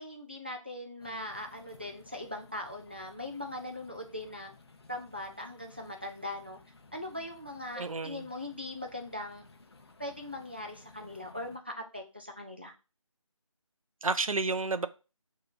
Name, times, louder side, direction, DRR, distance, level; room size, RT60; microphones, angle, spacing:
voice 1, 0.0-4.5 4.9-6.6 6.9-9.4 10.0-12.7, left 1 dB, 20° right, 3 dB, 0.3 m, -40 dB
sound 1, 1.0-11.6, left 3 dB, 50° left, 0.6 m, -57 dB
voice 2, 7.8-8.3 14.0-14.9, right 3 dB, 90° right, 12 dB, 0.5 m, -31 dB
5.6 x 2.7 x 2.5 m, 0.32 s
figure-of-eight pair, 160°, 17 cm